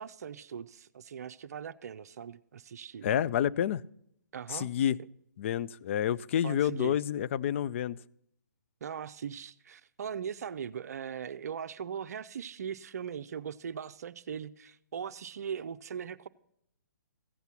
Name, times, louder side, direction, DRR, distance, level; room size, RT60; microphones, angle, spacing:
voice 1, 0.0-3.1 4.3-4.7 6.4-7.0 8.8-16.3, right 7 dB, 60° right, 0.5 m, -40 dB
voice 2, 3.0-3.8 4.5-5.0 5.4-8.0, left 10 dB, 40° left, 0.4 m, -29 dB
15.5 x 8.1 x 5.8 m
figure-of-eight pair, 140°, 10 cm